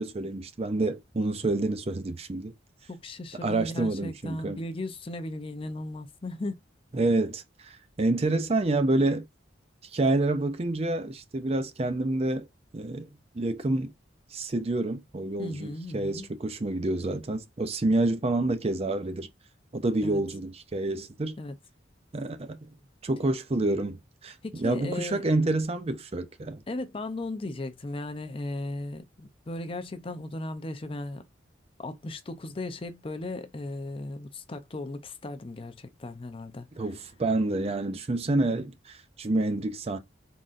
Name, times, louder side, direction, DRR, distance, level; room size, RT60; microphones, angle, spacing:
voice 1, 0.0-2.5 3.4-4.6 6.9-9.3 9.8-12.5 12.7-13.1 13.3-13.9 14.3-19.3 19.7-21.4 22.1-22.6 23.0-26.6 36.8-40.0, right 2 dB, 35° right, 0.5 m, -28 dB
voice 2, 2.9-6.6 15.4-16.3 20.0-20.2 21.4-21.6 24.4-25.2 26.7-31.2 31.8-36.7, left 2 dB, 30° left, 0.5 m, -36 dB
4.0 x 3.7 x 2.4 m
head